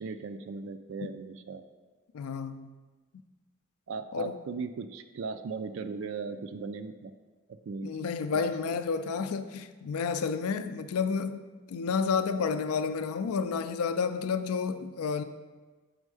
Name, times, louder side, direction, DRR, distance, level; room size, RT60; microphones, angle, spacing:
voice 1, 0.0-1.6 3.9-7.1 7.5-7.9 8.3-8.5, right 4 dB, 60° right, 0.3 m, -37 dB
voice 2, 2.1-2.7 4.1-4.4 7.8-15.2, left 5 dB, 90° left, 0.4 m, -30 dB
6.4 x 4.4 x 4.8 m
head